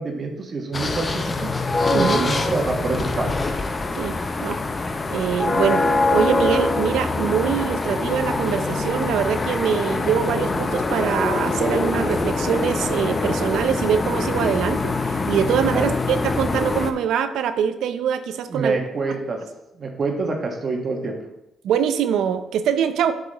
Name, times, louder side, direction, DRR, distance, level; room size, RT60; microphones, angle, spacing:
voice 1, 0.0-1.5 1.9-3.3 15.7-16.0 18.5-19.4 19.7-21.2, right 3 dB, 45° right, 2 dB, 1.3 m, -26 dB
sound 1, 0.7-16.9, left 3 dB, 30° left, 0.7 m, -24 dB
voice 2, 3.9-4.6 5.1-5.8 6.1-18.8 21.6-23.1, right 8 dB, 80° right, 10 dB, 0.5 m, -23 dB
7.5 x 4.9 x 4.0 m, 0.89 s
cardioid pair, 90°, 0 cm